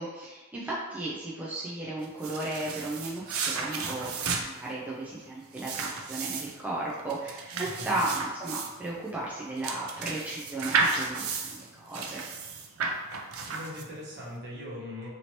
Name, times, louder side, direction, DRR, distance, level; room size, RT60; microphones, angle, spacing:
voice 1, 0.0-12.3, right 2 dB, 5° right, -6 dB, 0.3 m, -35 dB
sound 1, 2.0-14.1, right 4 dB, 75° right, 0.4 m, -33 dB
voice 2, 7.5-8.1 13.5-15.1, left 1 dB, 55° right, -5 dB, 1.0 m, -40 dB
2.9 x 2.8 x 2.9 m, 1.2 s
head